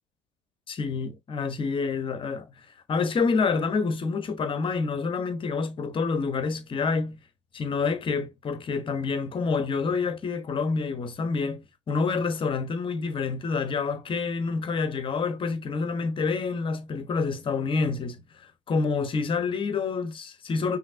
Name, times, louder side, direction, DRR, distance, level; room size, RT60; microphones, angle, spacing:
voice 1, 0.7-2.5 2.9-7.2 7.5-18.2 18.7-20.8, left 4 dB, 35° left, 1.1 m, -27 dB
5.7 x 2.8 x 2.7 m
figure-of-eight pair, 60°, 15 cm